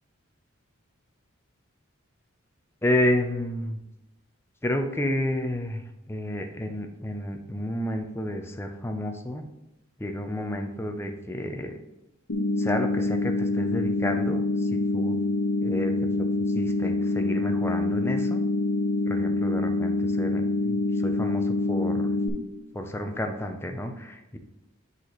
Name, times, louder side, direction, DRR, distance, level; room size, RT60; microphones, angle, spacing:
voice 1, 2.8-3.8 4.6-9.4 10.0-11.8 12.6-15.2 15.6-15.9 16.2-16.3 16.5-18.4 19.0-22.2 22.7-24.4, left 1 dB, 10° left, 5 dB, 0.5 m, -30 dB
sound 1, 12.3-22.3, left 2 dB, 85° left, 1.3 m, -26 dB
10.0 x 4.1 x 3.1 m, 0.93 s
head